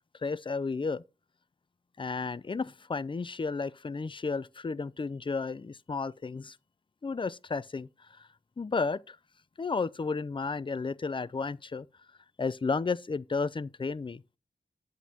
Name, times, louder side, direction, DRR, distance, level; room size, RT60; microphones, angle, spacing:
voice 1, 0.2-1.0 2.0-6.6 7.0-8.3 8.6-9.2 9.6-11.9 12.4-14.2, left 4 dB, 25° left, 0.4 m, -33 dB
8.9 x 8.0 x 2.8 m
wide cardioid pair, 85°, 19 cm